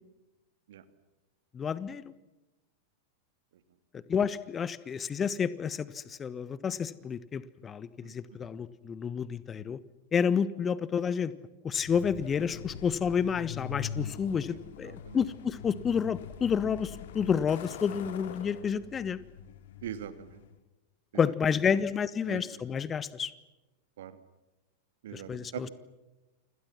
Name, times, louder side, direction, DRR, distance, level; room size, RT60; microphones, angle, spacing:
voice 1, 1.5-2.1 3.9-9.8 10.1-11.3 11.6-19.2 21.1-23.3 25.1-25.7, left 7 dB, 20° left, 17 dB, 1.4 m, -30 dB
voice 2, 8.0-8.5 14.9-15.2 19.8-20.4 22.2-22.4 24.0-24.2 25.0-25.7, right 10 dB, 60° right, 11 dB, 2.4 m, -42 dB
Truck, 11.8-20.5, left 9 dB, 55° left, 2.9 m, -43 dB
29.5 x 26.5 x 6.0 m, 1.0 s
figure-of-eight pair, 90°, 0 cm